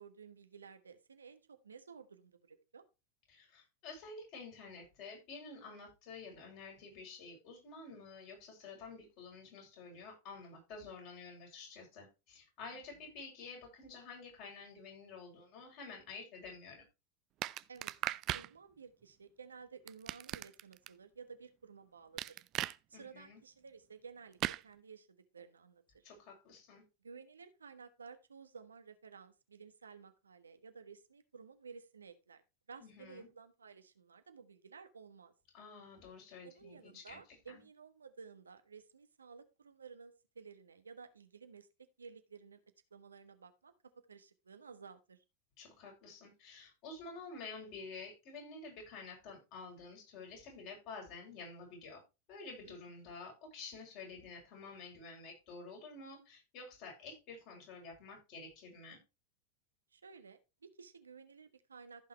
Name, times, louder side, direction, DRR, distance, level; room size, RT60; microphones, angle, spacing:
voice 1, 0.0-2.8 12.7-12.8 17.7-17.9 18.3-22.4 22.9-26.1 27.0-32.4 32.7-35.3 36.4-42.6 42.9-45.2 52.7-52.8 59.9-62.1, right 5 dB, 85° right, 1.3 m, -54 dB
voice 2, 3.3-16.8 22.9-23.4 26.0-26.8 32.8-33.3 35.5-37.2 37.5-37.6 45.6-52.0 52.3-59.0, left 4 dB, 50° left, 7.1 m, -50 dB
sound 1, 17.4-18.5 19.9-20.9 22.2-22.8 24.4-24.6, right 15 dB, 40° right, 0.5 m, -37 dB
15.0 x 5.8 x 3.2 m
hypercardioid pair, 90°, 0 cm